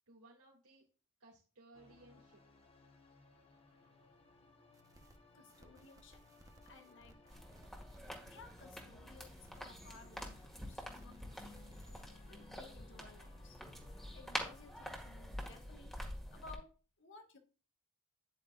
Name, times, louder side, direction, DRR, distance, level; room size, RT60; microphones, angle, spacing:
voice 1, 0.1-0.9 1.2-2.4, right 2 dB, 80° right, 2.7 m, -61 dB
sound 1, 1.7-14.9, left 3 dB, 25° left, 1.5 m, -65 dB
sound 2, 4.7-5.2 5.5-8.8 9.1-12.1, right 1 dB, 15° right, 1.2 m, -62 dB
voice 2, 5.3-6.2 6.6-7.4 8.2-13.6 14.1-17.4, left 4 dB, 60° left, 1.6 m, -58 dB
sound 3, 7.3-16.6, equal, ahead, 2.1 m, -47 dB
9.6 x 9.3 x 2.6 m
head